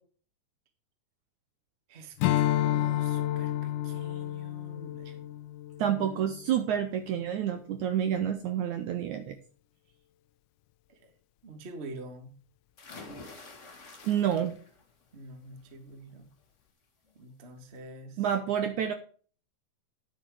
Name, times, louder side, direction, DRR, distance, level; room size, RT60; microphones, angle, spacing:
voice 1, 1.9-5.3 5.8-6.3 10.9-11.1 11.4-12.3 15.1-16.3 17.1-18.3, right 2 dB, 45° right, 6 dB, 0.8 m, -46 dB
Strum, 2.2-6.9, left 13 dB, 90° left, 1.8 m, -30 dB
voice 2, 5.8-9.4 14.0-14.6 18.2-18.9, right 9 dB, 80° right, 8 dB, 1.8 m, -29 dB
sound 1, 12.8-14.9 15.3-15.7 17.1-17.2 17.6-17.7, left 3 dB, 65° left, 0.7 m, -47 dB
10.5 x 7.6 x 4.7 m, 0.41 s
omnidirectional pair, 4.3 m